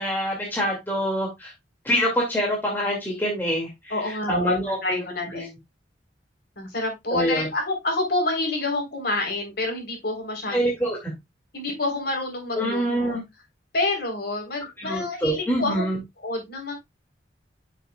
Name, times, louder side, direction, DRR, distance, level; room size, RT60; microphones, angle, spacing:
voice 1, 0.0-1.5 1.8-5.0 5.4-5.5 7.1-7.5 10.5-11.1 12.5-13.2 14.8-16.0, equal, 10° left, -3 dB, 2.3 m, -25 dB
voice 2, 3.9-5.6 6.6-10.6 11.5-13.1 13.7-15.9 16.2-16.7, left 2 dB, 60° left, 3 dB, 3.8 m, -28 dB
9.5 x 6.4 x 2.3 m, 0.19 s
head